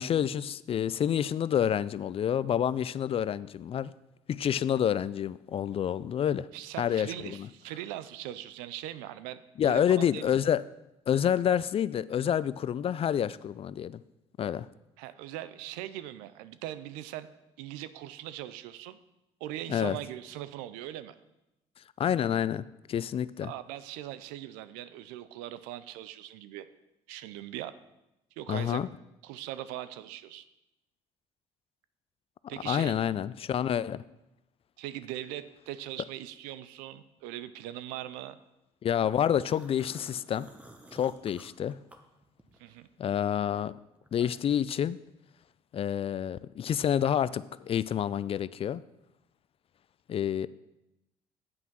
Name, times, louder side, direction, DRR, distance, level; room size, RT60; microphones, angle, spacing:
voice 1, 0.0-3.9 4.3-6.5 6.8-7.5 9.6-10.6 11.1-14.0 14.4-14.7 19.7-20.0 22.0-23.5 28.5-28.9 32.7-34.0 38.8-40.5 40.9-41.8 43.0-43.7 44.1-45.0 45.7-48.8 50.1-50.5, left 9 dB, 45° left, 0.4 m, -28 dB
voice 2, 6.5-10.2 15.0-17.3 17.6-19.0 19.4-21.1 23.4-26.7 27.1-27.7 28.4-28.8 29.2-30.5 32.5-33.0 34.8-38.4 42.6-42.9, right 13 dB, 85° right, 0.5 m, -40 dB
sound 1, 39.2-42.7 43.1-44.6, right 1 dB, 10° right, 1.2 m, -54 dB
7.9 x 5.7 x 6.1 m
supercardioid pair, 65°, 14 cm